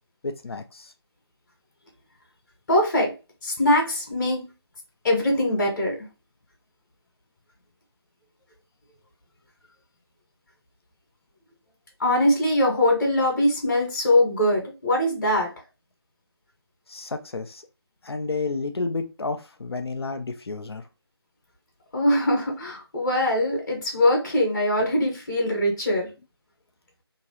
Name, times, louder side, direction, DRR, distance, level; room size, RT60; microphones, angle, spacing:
voice 1, 0.2-0.9 16.9-17.6 18.0-20.8, left 3 dB, 65° left, 7 dB, 0.6 m, -31 dB
voice 2, 2.7-3.1 3.4-4.5 5.0-6.0 12.0-15.5 21.9-26.1, left 1 dB, 45° left, 1 dB, 1.2 m, -22 dB
3.0 x 2.4 x 2.8 m, 0.28 s
figure-of-eight pair, 160°, 14 cm